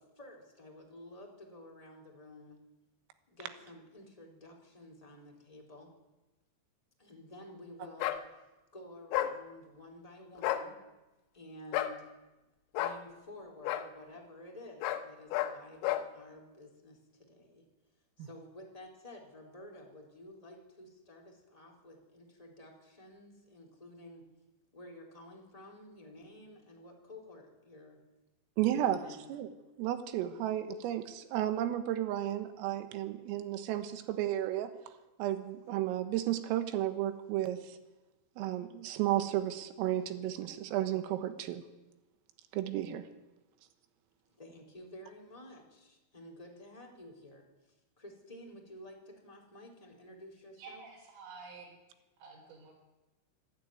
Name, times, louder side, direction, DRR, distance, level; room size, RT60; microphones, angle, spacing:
voice 1, 0.0-2.6 3.3-5.9 7.0-8.2 8.7-10.8 11.3-12.0 12.8-17.7 18.2-24.3 24.7-28.0 28.7-29.3 44.4-47.5 48.0-50.8, left 1 dB, 10° left, 0 dB, 3.3 m, -52 dB
sound 1, 8.0-8.2 9.1-9.3 10.4-10.7 11.7-12.0 12.7-13.0 13.6-13.9 14.8-15.0 15.3-15.5 15.8-16.1, left 12 dB, 85° left, 3.7 m, -31 dB
voice 2, 28.6-29.0 29.3-29.5 29.8-34.7 35.2-37.8 38.4-41.6 42.5-43.1, right 12 dB, 90° right, 9 dB, 4.0 m, -33 dB
voice 3, 50.6-51.7 52.2-52.7, right 4 dB, 70° right, -2 dB, 7.2 m, -50 dB
25.0 x 12.0 x 9.4 m, 1.1 s
omnidirectional pair, 5.8 m